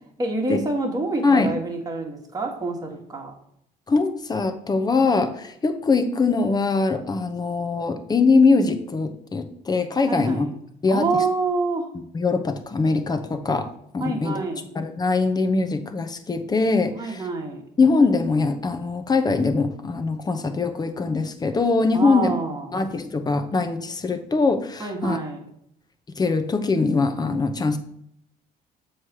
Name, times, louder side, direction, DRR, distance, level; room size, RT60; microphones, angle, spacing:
voice 1, 0.2-3.3 10.1-10.5 10.9-11.9 14.0-14.7 16.9-17.6 21.9-22.7 24.8-25.4, right 3 dB, 20° right, 1 dB, 1.5 m, -27 dB
voice 2, 3.9-10.5 10.8-11.0 12.1-13.7 13.9-14.4 14.7-17.2 17.8-22.3 22.7-25.2 26.2-27.8, left 4 dB, 25° left, 8 dB, 0.8 m, -22 dB
7.4 x 3.3 x 5.9 m, 0.73 s
cardioid pair, 110°, 17 cm